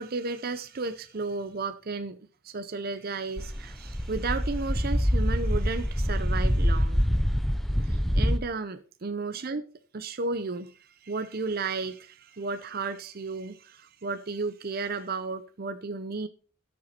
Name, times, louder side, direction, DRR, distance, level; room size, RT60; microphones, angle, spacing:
voice 1, 0.0-2.2 2.4-7.0 7.8-9.7 9.9-16.3, right 3 dB, 45° right, 0.6 m, -33 dB
sound 1, 3.4-8.4, equal, ahead, 0.7 m, -25 dB
13.0 x 6.9 x 4.4 m
head